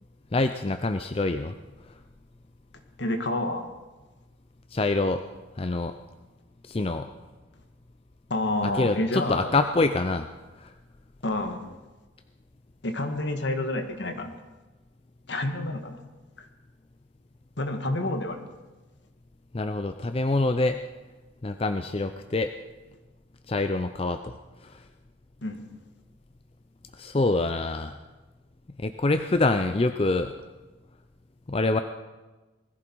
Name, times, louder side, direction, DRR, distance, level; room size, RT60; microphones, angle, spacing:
voice 1, 0.3-1.5 4.7-5.2 5.6-5.9 6.6-7.1 8.7-10.3 10.6-10.7 19.5-20.8 21.4-22.5 23.5-24.3 24.6-24.8 27.0-28.0 28.8-30.3 31.5-31.8, left 2 dB, 30° left, 8 dB, 0.5 m, -25 dB
voice 2, 3.0-3.7 8.3-9.5 11.2-11.6 12.8-14.3 15.3-16.0 16.4-16.5 17.6-18.4 25.4-25.6, left 1 dB, 65° left, 6 dB, 1.8 m, -29 dB
20.5 x 15.0 x 4.6 m, 1.2 s
head